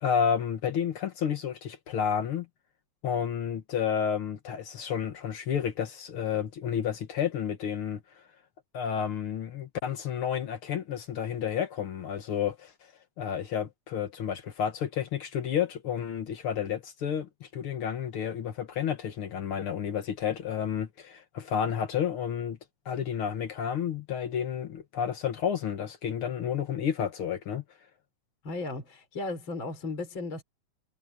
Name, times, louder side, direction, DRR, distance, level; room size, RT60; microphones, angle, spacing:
voice 1, 0.0-2.5 3.0-8.0 8.7-12.7 13.2-22.6 22.8-27.6, left 8 dB, 60° left, 1.6 m, -31 dB
voice 2, 28.4-30.4, left 3 dB, 40° left, 5.1 m, -35 dB
omnidirectional pair, 3.5 m